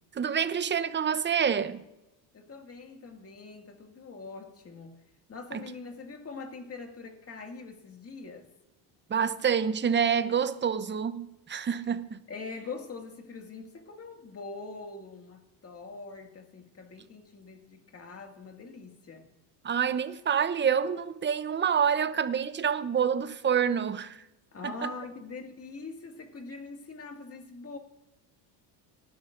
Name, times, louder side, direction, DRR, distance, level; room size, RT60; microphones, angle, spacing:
voice 1, 0.1-1.8 5.5-5.7 9.1-12.2 19.6-24.2 24.6-24.9, right 7 dB, 25° right, 0.8 m, -27 dB
voice 2, 2.3-5.0 5.3-8.5 12.3-19.3 24.5-27.8, left 4 dB, 30° left, 2.1 m, -43 dB
19.5 x 11.0 x 2.6 m
supercardioid pair, 100°, 45 cm